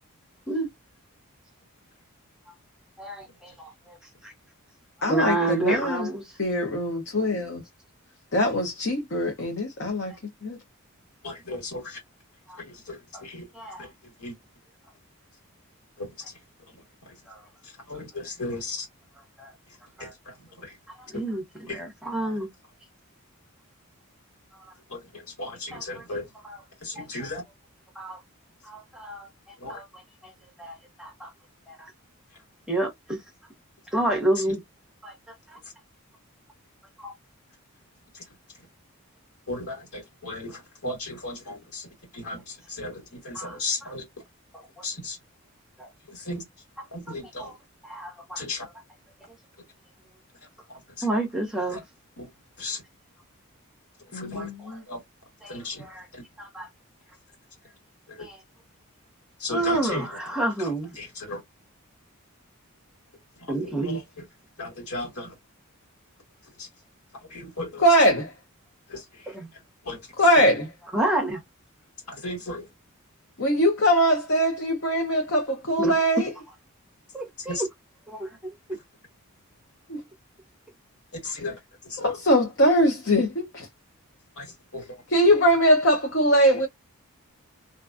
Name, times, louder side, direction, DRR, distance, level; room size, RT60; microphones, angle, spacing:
voice 1, 3.0-4.0 4.2-4.3 5.1-6.2 12.5-12.6 13.5-13.9 17.3-17.4 19.4-19.5 20.0-20.1 21.1-21.4 21.7-22.5 27.0-27.1 28.0-28.2 28.6-29.3 29.7-29.8 30.2-30.3 30.6-31.3 31.7-31.9 32.7-33.2 33.9-34.6 35.0-35.1 37.0-37.1 43.4-43.5 45.8-45.9 47.4-47.5 47.8-48.4 51.0-51.8 54.3-54.4 55.4-55.6 56.4-56.7 59.5-60.1 60.3-60.9 63.5-64.0 69.3-69.5 70.9-71.4 75.8-75.9 77.1-77.5 78.1-78.8, right 2 dB, 5° right, 0.8 m, -28 dB
voice 2, 5.0-6.1 6.4-7.6 8.3-10.1 10.4-10.6 54.1-54.8 67.8-68.3 70.2-70.7 73.4-76.3 79.9-80.0 82.0-83.7 85.1-86.7, equal, 55° left, 0.7 m, -22 dB
voice 3, 11.2-12.0 12.6-13.5 13.8-14.3 16.0-17.2 17.6-18.9 19.7-20.8 21.1-21.2 21.7-21.8 24.9-26.3 26.8-27.4 29.6-29.8 34.0-34.1 34.3-34.5 35.6-35.7 38.1-38.7 39.5-44.0 44.8-45.2 46.1-46.4 46.9-47.5 48.3-48.6 50.7-51.1 51.7-51.8 52.2-52.3 52.6-52.8 54.1-54.5 54.9-55.0 55.5-55.9 56.1-56.2 58.1-58.3 59.4-61.4 63.4-64.3 64.6-65.3 66.4-66.7 67.1-68.1 68.9-70.1 72.1-72.7 77.4-77.7 78.7-78.8 81.1-82.2 84.3-85.0, left 2 dB, 80° left, 1.6 m, -36 dB
2.6 x 2.2 x 2.4 m
head